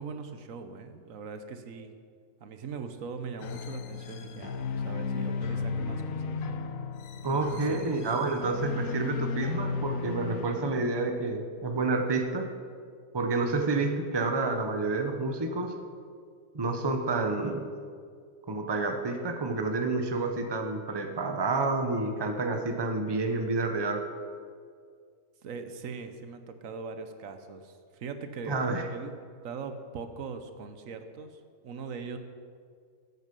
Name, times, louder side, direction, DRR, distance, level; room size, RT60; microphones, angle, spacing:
voice 1, 0.0-1.9 2.4-6.4 7.1-7.9 25.4-29.1 29.4-32.2, right 5 dB, 85° right, 8 dB, 1.3 m, -41 dB
sound 1, 3.4-11.1, left 5 dB, 90° left, 1.1 m, -34 dB
voice 2, 7.2-12.5 13.1-15.7 16.5-17.7 18.5-24.0 28.5-28.8, right 3 dB, 20° right, 4 dB, 0.9 m, -29 dB
14.0 x 8.1 x 5.3 m, 2.1 s
omnidirectional pair, 1.4 m